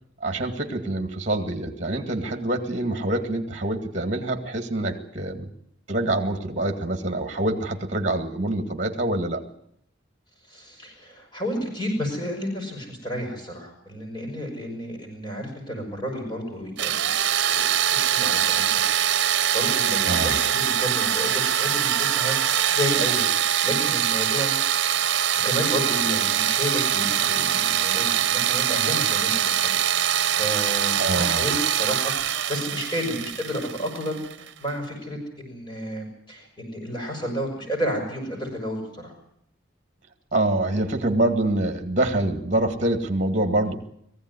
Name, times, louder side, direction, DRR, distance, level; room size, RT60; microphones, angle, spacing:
voice 1, 0.2-5.5 5.9-9.4 20.1-20.4 31.0-31.5 40.3-43.7, right 1 dB, 35° right, 6 dB, 2.1 m, -25 dB
voice 2, 10.5-17.1 17.4-18.8 19.3-22.3 22.7-24.5 25.4-39.1, equal, 25° left, 2 dB, 6.4 m, -31 dB
sound 1, 16.8-34.5, right 10 dB, 65° right, 0.9 m, -23 dB
21.0 x 15.5 x 9.8 m, 0.72 s
head